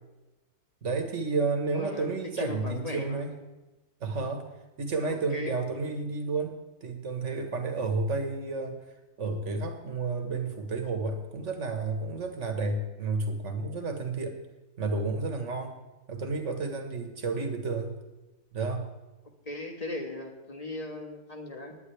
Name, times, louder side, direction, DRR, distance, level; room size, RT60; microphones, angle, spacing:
voice 1, 0.8-3.3 4.0-4.5 4.8-8.8 9.2-14.4 14.8-15.7 16.1-18.0 18.5-18.9, right 3 dB, 50° right, 5 dB, 1.7 m, -31 dB
voice 2, 1.7-3.3 5.0-5.5 19.4-21.8, left 2 dB, 25° left, 3 dB, 1.5 m, -37 dB
18.0 x 10.5 x 3.4 m, 1.1 s
omnidirectional pair, 1.7 m